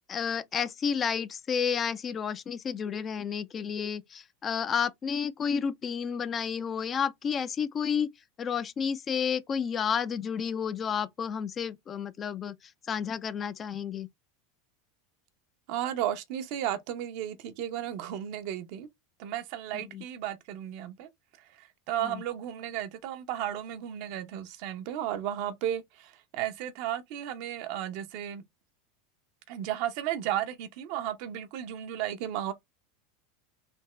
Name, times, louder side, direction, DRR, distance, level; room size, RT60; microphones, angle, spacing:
voice 1, 0.0-8.1 8.4-14.1 19.7-20.0 22.0-22.2, left 7 dB, 30° left, 0.4 m, -31 dB
voice 2, 15.7-18.9 19.2-21.1 21.6-28.4 29.5-32.5, right 11 dB, 60° right, 0.7 m, -34 dB
3.4 x 2.8 x 3.1 m
supercardioid pair, 120°, 0 cm